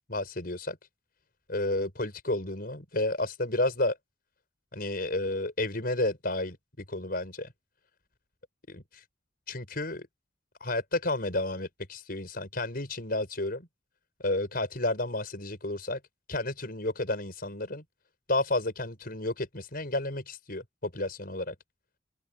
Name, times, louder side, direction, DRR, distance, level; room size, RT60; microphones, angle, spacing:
voice 1, 0.1-0.8 1.5-4.0 4.7-6.6 6.9-7.5 8.7-9.0 9.5-10.1 10.6-13.7 14.2-16.0 16.3-17.8 18.3-21.5, left 2 dB, 50° left, 5.7 m, -31 dB
head